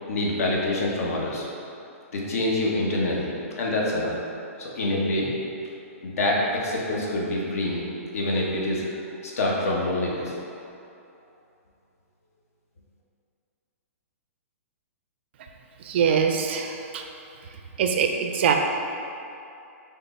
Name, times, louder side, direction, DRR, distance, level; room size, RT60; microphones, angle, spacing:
voice 1, 0.1-1.4 2.1-4.1 4.6-5.3 6.0-7.8 8.1-10.3, left 1 dB, 70° left, -3 dB, 1.0 m, -26 dB
voice 2, 15.8-17.0 17.8-18.5, right 7 dB, 45° right, 4 dB, 0.4 m, -23 dB
5.7 x 2.0 x 4.1 m, 2.7 s
hypercardioid pair, 165°, 8 cm